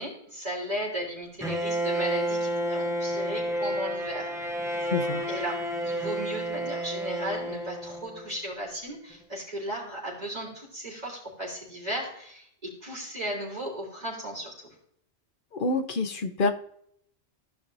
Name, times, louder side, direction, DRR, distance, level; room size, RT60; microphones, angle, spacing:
voice 1, 0.0-4.3 4.6-4.9 5.3-14.7, right 1 dB, 35° right, -4 dB, 3.8 m, -36 dB
Bowed string instrument, 1.4-8.3, right 1 dB, 5° right, 0.6 m, -30 dB
voice 2, 4.9-5.2 15.5-16.5, left 3 dB, 50° left, 6 dB, 0.9 m, -27 dB
15.0 x 5.6 x 2.7 m, 0.69 s
omnidirectional pair, 1.2 m